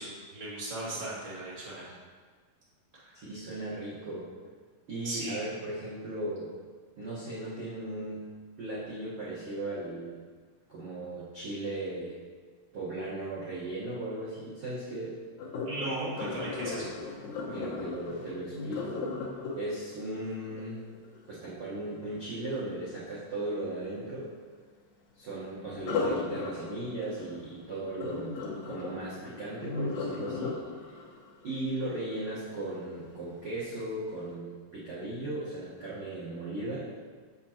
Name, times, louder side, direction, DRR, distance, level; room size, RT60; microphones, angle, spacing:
voice 1, 0.0-1.9 2.9-3.2 5.0-5.4 15.6-16.9, right 2 dB, 20° right, -9 dB, 1.3 m, -37 dB
voice 2, 3.1-4.3 4.9-6.5 7.0-8.3 8.6-10.2 10.7-12.2 12.7-15.2 17.5-19.1 19.5-20.8 21.3-24.3 25.1-30.6 30.9-31.0 31.4-36.9, right 2 dB, 70° right, -10 dB, 1.3 m, -37 dB
Sink (filling or washing), 15.4-21.3 25.7-32.8 33.3-33.6 34.1-34.2, left 3 dB, 70° left, 1.8 m, -37 dB
7.5 x 7.3 x 2.9 m, 1.5 s
omnidirectional pair, 4.7 m